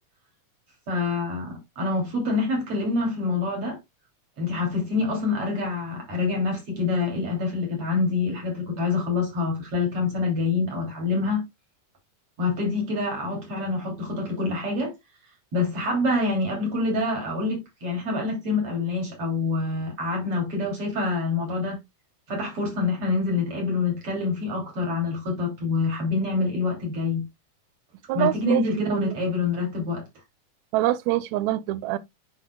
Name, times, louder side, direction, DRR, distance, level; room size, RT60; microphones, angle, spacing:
voice 1, 0.9-3.8 4.4-11.4 12.4-14.9 15.5-21.8 22.3-27.3 28.1-30.1, left 3 dB, 45° right, 3.9 m, -26 dB
voice 2, 28.1-29.2 30.7-32.0, right 14 dB, 75° right, 1.8 m, -25 dB
9.4 x 5.9 x 2.3 m
omnidirectional pair, 3.7 m